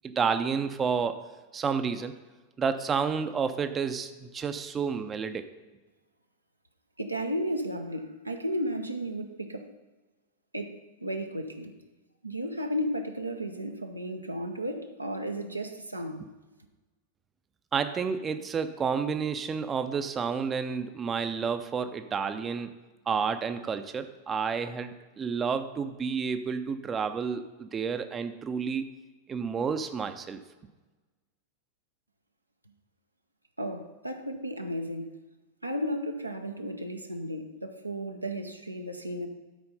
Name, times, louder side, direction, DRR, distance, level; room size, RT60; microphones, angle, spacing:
voice 1, 0.0-1.2 1.5-2.1 2.6-5.5 17.7-22.7 23.1-28.9 29.3-30.4, right 6 dB, 20° right, 9 dB, 0.6 m, -30 dB
voice 2, 7.0-9.7 10.5-11.7 12.2-16.3 33.6-35.2 35.6-39.3, equal, 85° right, 4 dB, 0.8 m, -34 dB
12.5 x 4.4 x 5.5 m, 1.2 s
figure-of-eight pair, 90°, 0 cm